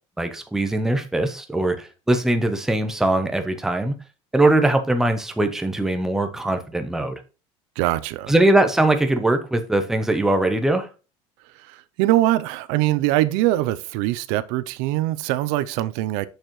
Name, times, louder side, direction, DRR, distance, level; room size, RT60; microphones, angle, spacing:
voice 1, 0.2-3.9 4.3-7.2 8.3-10.9, right 2 dB, 5° right, 0.6 m, -21 dB
voice 2, 7.8-8.3 11.6-16.3, right 15 dB, 80° right, 0.5 m, -22 dB
6.5 x 6.4 x 3.1 m
cardioid pair, 175°, 12 cm